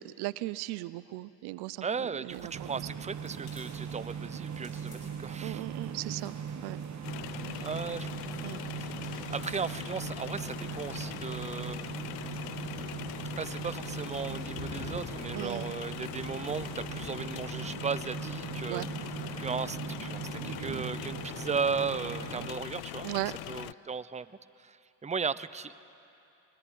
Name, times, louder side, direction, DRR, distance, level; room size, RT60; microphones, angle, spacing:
voice 1, 0.0-2.9 5.4-6.3 6.6-6.8 7.5-7.7 8.4-8.6 15.3-15.7 18.7-18.9 23.0-23.3, right 20 dB, 70° right, 18 dB, 0.7 m, -37 dB
voice 2, 1.8-5.6 7.6-8.1 8.8-8.9 9.3-11.9 13.4-18.8 19.4-23.1 23.5-24.3 24.6-24.8 25.0-25.8, right 5 dB, 15° right, 16 dB, 0.8 m, -36 dB
sound 1, 2.3-17.5, left 2 dB, 90° left, 6.4 m, -51 dB
sound 2, 2.5-22.5, right 7 dB, 45° right, 1.3 m, -40 dB
sound 3, 7.0-23.7, left 22 dB, 70° left, 0.5 m, -42 dB
25.0 x 21.0 x 8.5 m, 2.7 s
hypercardioid pair, 60°, 40 cm